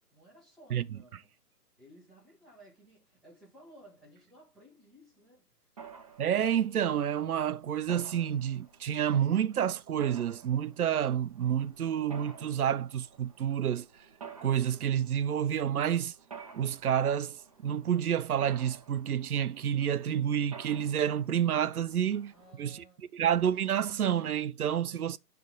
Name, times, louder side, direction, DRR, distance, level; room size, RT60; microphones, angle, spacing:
voice 1, 0.1-1.3 1.8-5.5 22.3-23.2, right 1 dB, ahead, 1.1 m, -57 dB
Mechanisms, 5.8-22.5, right 6 dB, 25° right, 0.7 m, -52 dB
voice 2, 6.2-13.9 14.4-16.1 16.5-17.4 17.6-22.3 22.6-22.8 23.1-25.2, right 9 dB, 65° right, 0.5 m, -29 dB
10.0 x 3.4 x 3.8 m
figure-of-eight pair, 150°, 48 cm